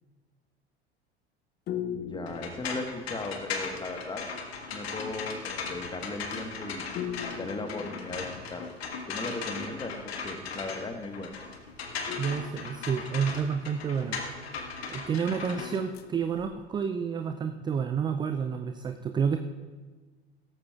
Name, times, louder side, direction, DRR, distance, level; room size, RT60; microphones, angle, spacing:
sound 1, 1.7-3.4 7.0-8.8 12.1-13.6 15.5-16.7, left 9 dB, 30° left, 0.7 m, -40 dB
voice 1, 1.9-4.2 4.7-6.8 7.4-8.7 9.1-11.4, left 3 dB, 15° left, 5 dB, 1.4 m, -37 dB
sound 2, 2.3-16.5, left 4 dB, 65° left, 1.6 m, -38 dB
voice 2, 12.2-14.2 14.9-19.4, right 6 dB, 15° right, 8 dB, 0.4 m, -30 dB
17.5 x 14.0 x 2.4 m, 1.4 s
figure-of-eight pair, 75°, 33 cm